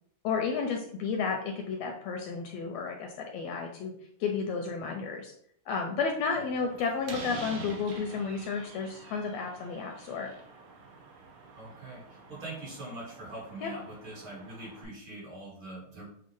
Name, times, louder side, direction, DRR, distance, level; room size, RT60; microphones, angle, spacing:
voice 1, 0.2-3.9 4.2-5.3 5.7-10.3 13.6-13.7, left 5 dB, 80° left, 3 dB, 1.5 m, -32 dB
Slam, 6.2-14.9, right 4 dB, 75° right, 1.3 m, -47 dB
voice 2, 11.6-16.1, right 2 dB, 50° right, -5 dB, 1.9 m, -43 dB
6.9 x 2.4 x 3.0 m, 0.66 s
omnidirectional pair, 3.3 m